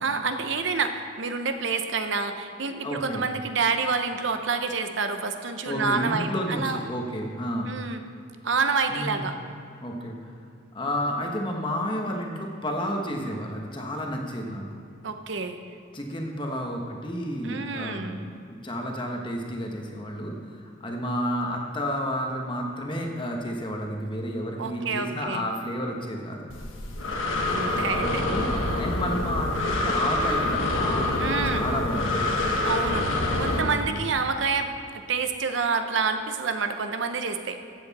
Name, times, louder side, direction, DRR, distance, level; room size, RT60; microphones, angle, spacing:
voice 1, 0.0-6.8 7.7-8.0 8.4-9.3 15.0-15.6 17.4-18.2 24.6-25.4 27.5-28.2 31.2-31.6 32.7-33.1 33.4-34.7 35.1-37.6, right 4 dB, 60° right, 7 dB, 0.7 m, -28 dB
voice 2, 2.8-3.3 5.6-7.8 8.9-9.2 9.8-10.3 10.7-14.8 15.9-26.5 27.7-32.3 33.5-34.0, equal, 25° left, 1 dB, 1.1 m, -31 dB
Breathing, 26.5-33.6, left 2 dB, 70° left, 1.3 m, -26 dB
14.5 x 7.9 x 4.1 m, 2.4 s
head